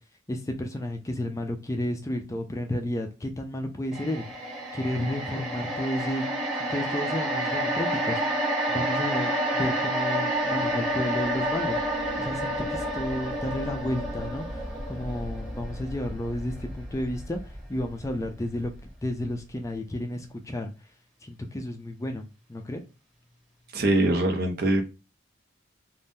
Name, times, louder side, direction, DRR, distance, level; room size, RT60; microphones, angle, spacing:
voice 1, 0.3-4.3 4.7-6.3 6.7-8.4 8.7-18.7 19.0-20.7 21.2-22.8, left 1 dB, 15° left, 0.3 m, -32 dB
sound 1, 3.9-18.3 18.6-18.8, right 1 dB, 5° right, 1.0 m, -29 dB
voice 2, 23.7-24.8, right 1 dB, 50° right, 0.6 m, -23 dB
2.6 x 2.1 x 3.5 m
head